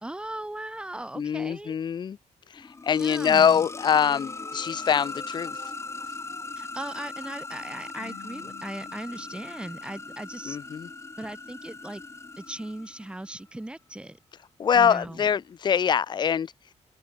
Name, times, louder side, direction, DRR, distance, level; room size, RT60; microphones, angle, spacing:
voice 1, 0.0-1.7 3.0-3.7 6.6-10.6 11.2-12.0 12.4-14.2 14.7-15.4, right 1 dB, 10° right, 0.7 m, -38 dB
voice 2, 1.2-2.2 2.5-5.6 10.5-10.9 14.6-16.5, left 7 dB, 35° left, 0.4 m, -24 dB
sound 1, 2.5-13.3, left 3 dB, 20° left, 1.2 m, -39 dB
Marimba xylophone, 8.0-10.6, left 11 dB, 80° left, 0.8 m, -50 dB
open air
cardioid pair, 120°, 13 cm